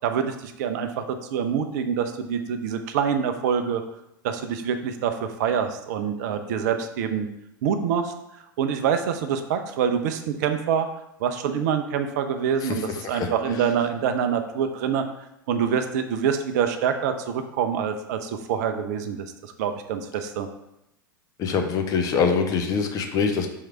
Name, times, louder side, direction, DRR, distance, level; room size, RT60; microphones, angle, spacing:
voice 1, 0.0-3.8 4.2-7.3 7.6-8.1 8.6-10.9 11.2-15.0 15.5-20.5, right 7 dB, 50° right, 7 dB, 0.5 m, -26 dB
voice 2, 12.6-13.6 21.4-23.5, left 5 dB, 30° left, 5 dB, 0.6 m, -25 dB
3.7 x 3.2 x 4.4 m, 0.84 s
figure-of-eight pair, 90°, 11 cm